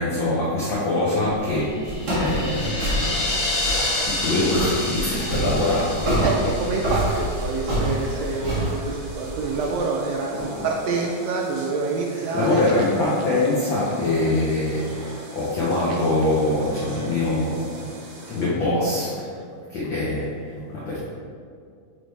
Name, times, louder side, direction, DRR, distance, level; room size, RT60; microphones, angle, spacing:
voice 1, 0.0-3.3 4.1-6.3 7.1-7.2 8.2-8.3 10.3-10.7 12.1-17.9 18.3-19.3 19.7-21.0, left 2 dB, 80° left, -7 dB, 1.0 m, -24 dB
Walk footsteps, 1.2-9.8, right 1 dB, 40° right, 1.7 m, -27 dB
sound 1, 1.7-7.9, left 2 dB, 50° left, 1.3 m, -29 dB
sound 2, 3.1-18.5, right 1 dB, 65° right, 2.2 m, -41 dB
voice 2, 6.2-12.6 15.9-16.0, right 4 dB, 85° right, 0 dB, 1.5 m, -27 dB
6.9 x 3.3 x 4.5 m, 2.2 s
omnidirectional pair, 3.5 m